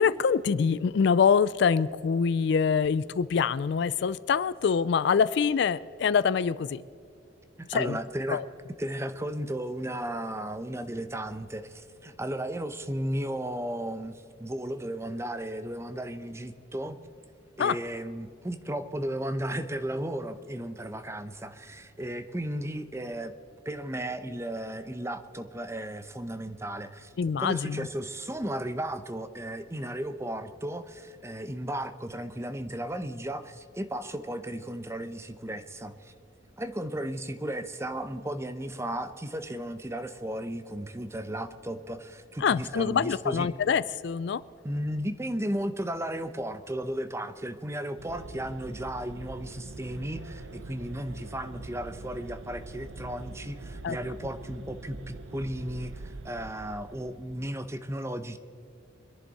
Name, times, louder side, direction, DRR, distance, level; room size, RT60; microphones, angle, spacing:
voice 1, 0.0-6.8 7.7-8.0 8.3-8.4 17.6-17.8 27.2-27.9 42.4-44.4 53.8-54.0, left 6 dB, 60° left, 18 dB, 0.3 m, -25 dB
voice 2, 7.6-8.4 8.8-11.6 12.0-14.1 14.4-16.9 17.6-23.3 23.7-27.1 27.4-35.9 36.6-43.5 44.6-50.4 50.7-55.9 56.2-58.4, right 1 dB, 15° right, 10 dB, 0.8 m, -34 dB
sound 1, 48.0-57.6, right 2 dB, 85° right, 0.7 m, -44 dB
25.0 x 11.0 x 4.1 m, 2.4 s
head